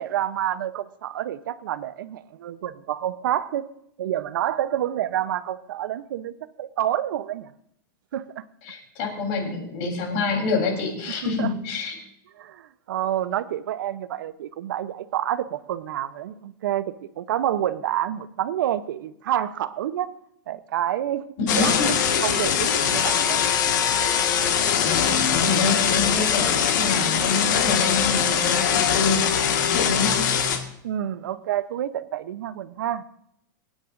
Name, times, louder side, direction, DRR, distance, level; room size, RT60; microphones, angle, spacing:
voice 1, 0.0-3.7 4.0-7.5 8.1-8.4 11.2-11.5 12.4-20.1 20.5-21.3 21.6-21.8 22.1-23.4 23.9-24.2 30.8-33.0, right 11 dB, 85° right, 14 dB, 0.8 m, -28 dB
voice 2, 8.7-12.0 21.4-21.9 24.8-30.2, left 4 dB, 40° left, 1 dB, 3.7 m, -27 dB
sound 1, 21.5-30.6, left 8 dB, 65° left, 1.7 m, -22 dB
24.0 x 9.9 x 2.6 m, 0.74 s
supercardioid pair, 175°, 11 cm